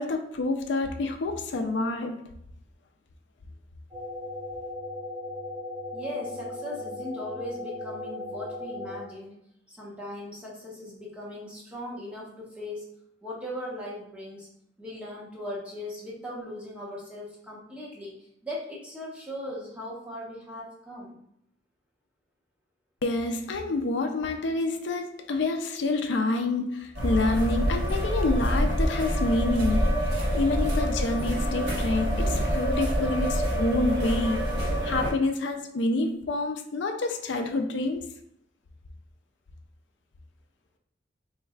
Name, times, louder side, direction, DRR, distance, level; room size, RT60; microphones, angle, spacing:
voice 1, 0.0-2.3 23.0-34.5 34.8-38.0, left 2 dB, 75° left, 5 dB, 0.4 m, -28 dB
sound 1, 3.9-9.0, left 2 dB, 25° right, 0.6 m, -37 dB
voice 2, 5.9-9.4 9.7-12.9 13.2-14.5 14.8-18.1 18.4-21.1, left 1 dB, 5° right, -5 dB, 0.9 m, -38 dB
sound 2, 26.9-35.1, equal, 70° right, 1.4 m, -26 dB
4.5 x 3.1 x 2.3 m, 0.72 s
head